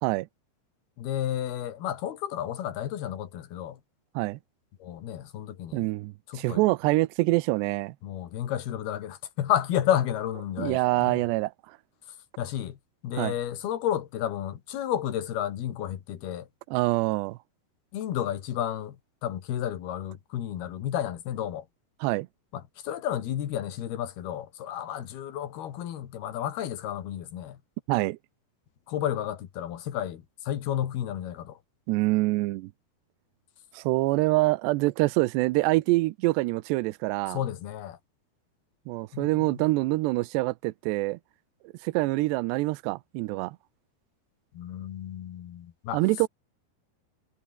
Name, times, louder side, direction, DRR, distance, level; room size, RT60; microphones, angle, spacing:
voice 1, 1.0-3.8 4.8-5.9 6.3-6.6 8.0-11.2 12.4-12.8 13.0-16.5 17.9-19.0 19.2-21.7 22.5-27.6 28.9-31.6 37.3-38.0 39.1-39.7 44.5-46.0, left 11 dB, 70° left, 3.9 m, -32 dB
voice 2, 5.7-7.9 10.6-11.8 13.1-13.3 16.7-17.4 22.0-22.3 27.9-28.2 31.9-32.7 33.7-37.4 38.9-41.2 41.8-43.6 45.9-46.3, right 20 dB, 85° right, 2.9 m, -25 dB
omnidirectional pair, 4.8 m